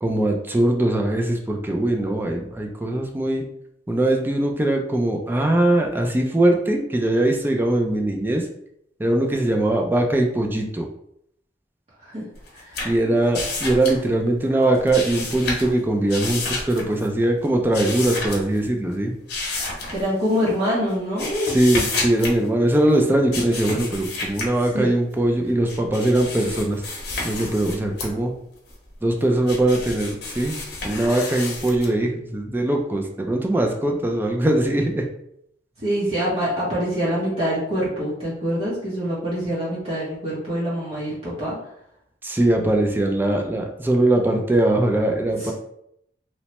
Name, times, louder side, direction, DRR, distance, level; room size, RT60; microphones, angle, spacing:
voice 1, 0.0-3.4 3.9-8.5 9.0-10.9 12.8-19.1 21.5-26.8 27.2-28.3 29.0-30.6 30.8-35.0 42.2-45.5, right 1 dB, 10° right, 2 dB, 0.4 m, -21 dB
sound 1, 12.4-14.4 14.6-15.8 16.1-17.1 17.7-18.6 19.3-20.4 20.9-22.4 23.3-24.5 25.5-28.1 28.7-31.9, left 3 dB, 65° left, 0.8 m, -30 dB
voice 2, 19.9-21.6 24.7-24.9 35.8-41.6 45.4-45.5, equal, 35° right, -8 dB, 0.8 m, -25 dB
3.1 x 2.1 x 2.8 m, 0.73 s
head